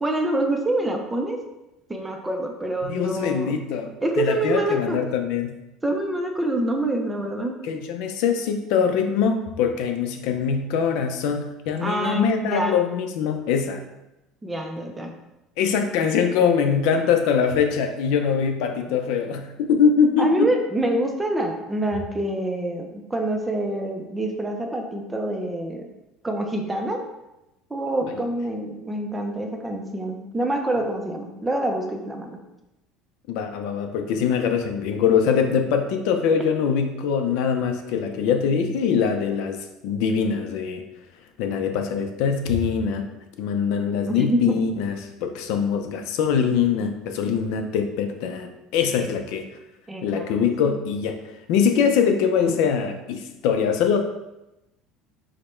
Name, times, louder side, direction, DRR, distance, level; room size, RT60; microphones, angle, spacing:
voice 1, 0.0-1.4 1.9-3.5 4.0-5.0 5.8-7.6 11.8-12.7 14.4-15.1 20.2-25.9 26.2-27.0 27.7-32.4 44.1-44.6 49.0-49.1 49.9-50.3 50.6-50.8 52.5-52.6, right 1 dB, 10° right, 2 dB, 0.4 m, -26 dB
voice 2, 2.8-5.6 7.6-13.8 15.6-20.5 33.3-40.8 41.4-43.1 43.4-44.9 45.2-49.5 50.0-51.2 51.5-54.0, left 6 dB, 70° left, 6 dB, 0.5 m, -23 dB
5.0 x 2.1 x 4.3 m, 0.94 s
cardioid pair, 160°, 0 cm